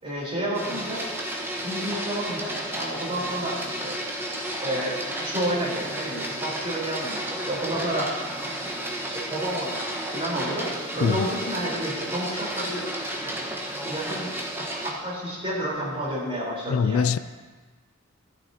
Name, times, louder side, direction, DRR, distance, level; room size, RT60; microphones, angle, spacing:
voice 1, 0.0-1.0 1.6-4.0 4.6-12.8 13.2-13.6 13.8-14.3 14.6-17.0, right 1 dB, 30° right, 4.1 m, -31 dB
Printer, 0.5-14.9, right 1 dB, 10° right, 1.3 m, -32 dB
voice 2, 16.7-17.2, left 6 dB, 75° left, 0.3 m, -22 dB
14.0 x 12.0 x 2.9 m
head